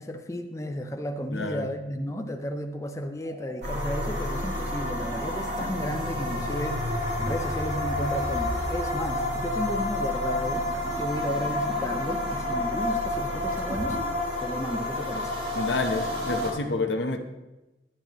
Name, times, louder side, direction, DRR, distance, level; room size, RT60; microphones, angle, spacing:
voice 1, 0.0-14.0 14.4-15.4, left 1 dB, 15° left, 5 dB, 0.5 m, -33 dB
voice 2, 1.3-1.7 15.5-17.2, left 3 dB, 85° left, 5 dB, 1.0 m, -28 dB
sound 1, 3.2-9.2 10.3-14.0, equal, 45° right, 1.1 m, -38 dB
sound 2, 3.6-16.5, left 1 dB, 65° right, 2.6 m, -30 dB
12.0 x 10.0 x 3.0 m, 1.0 s
head